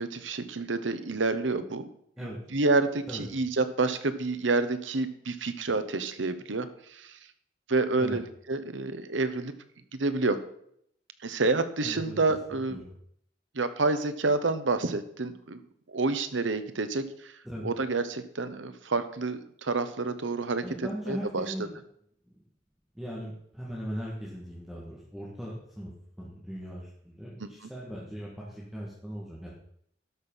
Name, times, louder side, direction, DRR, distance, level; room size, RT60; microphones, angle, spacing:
voice 1, 0.0-1.9 2.5-7.1 7.7-9.5 10.0-10.4 11.2-12.8 13.5-15.6 15.9-17.3 17.6-20.6 21.1-21.5 27.4-27.5, right 3 dB, 80° right, 11 dB, 1.0 m, -28 dB
voice 2, 11.8-12.2 12.7-12.9 17.4-17.7 20.6-21.7 22.3-22.4 23.0-25.9 26.2-29.5, equal, ahead, -5 dB, 2.0 m, -39 dB
12.5 x 6.3 x 5.7 m, 0.69 s
head